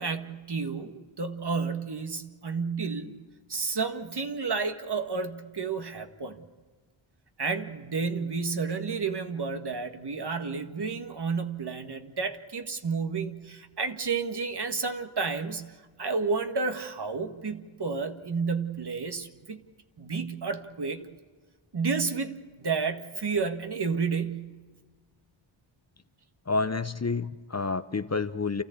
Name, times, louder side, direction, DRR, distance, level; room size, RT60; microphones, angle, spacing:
voice 1, 0.0-3.2 3.5-6.4 7.4-19.6 20.0-21.1 21.7-24.5, right 4 dB, 50° right, 7 dB, 1.8 m, -31 dB
voice 2, 26.5-28.6, left 4 dB, 30° left, 12 dB, 0.9 m, -29 dB
28.0 x 14.0 x 8.4 m, 1.4 s
cardioid pair, 40°, 50 cm